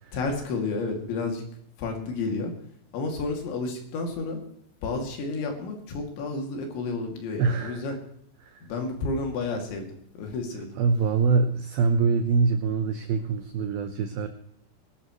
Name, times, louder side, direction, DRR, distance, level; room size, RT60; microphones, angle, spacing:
voice 1, 0.1-1.4 1.8-2.5 2.9-4.4 4.8-8.0 8.6-9.9 10.2-10.8, left 3 dB, 75° left, 2 dB, 4.7 m, -31 dB
voice 2, 7.4-7.9 8.4-8.7 10.8-14.3, right 5 dB, 85° right, 8 dB, 2.1 m, -24 dB
21.5 x 12.5 x 3.1 m, 0.66 s
omnidirectional pair, 5.4 m